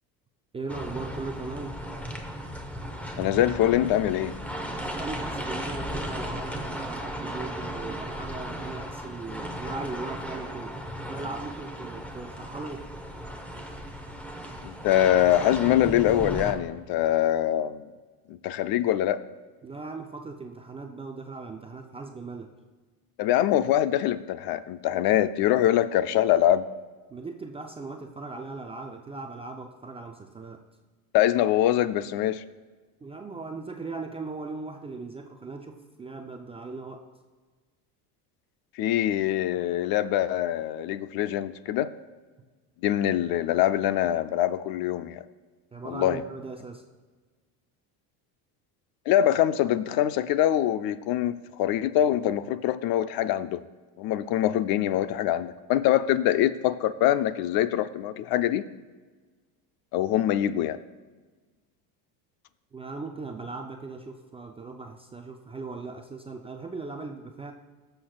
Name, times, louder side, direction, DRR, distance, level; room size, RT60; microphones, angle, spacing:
voice 1, 0.5-1.8 4.9-10.8 11.1-12.9 19.6-22.5 27.1-30.6 33.0-37.1 45.7-46.8 62.7-67.5, right 3 dB, 15° right, 3 dB, 0.3 m, -38 dB
sound 1, 0.7-16.5, equal, 5° left, 0.9 m, -36 dB
voice 2, 3.2-4.4 14.6-17.8 18.3-19.2 23.2-26.7 31.1-32.4 38.8-41.9 42.8-45.2 45.9-46.2 49.1-53.6 54.0-58.6 59.9-60.8, left 12 dB, 50° left, 14 dB, 0.5 m, -24 dB
14.5 x 6.6 x 2.3 m, 1.4 s
supercardioid pair, 100°, 47 cm